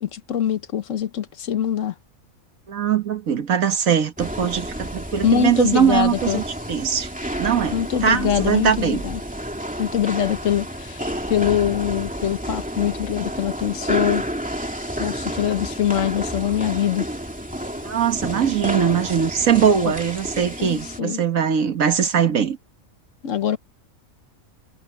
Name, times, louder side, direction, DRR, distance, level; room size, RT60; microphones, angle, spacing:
voice 1, 0.0-1.9 5.2-6.4 7.7-9.2 9.8-11.0 11.3-14.3 15.0-17.1 20.6-21.2 23.2-23.6, left 10 dB, 65° left, 1.3 m, -23 dB
voice 2, 2.7-7.1 7.4-7.8 8.0-9.0 17.8-22.6, right 8 dB, 80° right, 1.8 m, -21 dB
sound 1, 4.2-21.0, equal, 5° right, 2.5 m, -30 dB
omnidirectional pair, 1.4 m